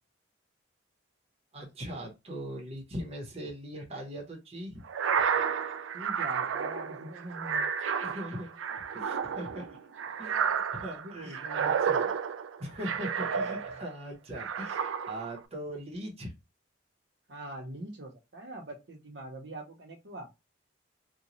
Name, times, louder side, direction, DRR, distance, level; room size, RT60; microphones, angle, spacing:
voice 1, 1.5-4.8 5.3-5.4 8.0-9.8 10.2-12.2 12.6-16.3, equal, 30° right, 0 dB, 0.9 m, -40 dB
sound 1, 4.9-14.0 14.4-15.4, right 7 dB, 80° right, 0.4 m, -31 dB
voice 2, 5.9-7.7 11.0-11.6 17.3-20.3, right 1 dB, 65° right, 2 dB, 0.9 m, -43 dB
3.0 x 2.2 x 3.9 m, 0.24 s
head